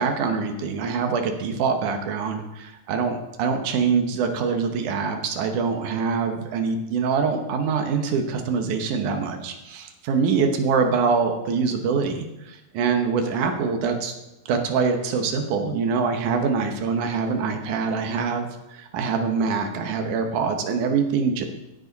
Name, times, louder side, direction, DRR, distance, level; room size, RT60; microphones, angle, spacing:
voice 1, 0.0-14.1 14.5-21.4, right 5 dB, 75° right, 5 dB, 1.8 m, -24 dB
16.0 x 7.8 x 4.1 m, 0.95 s
omnidirectional pair, 5.2 m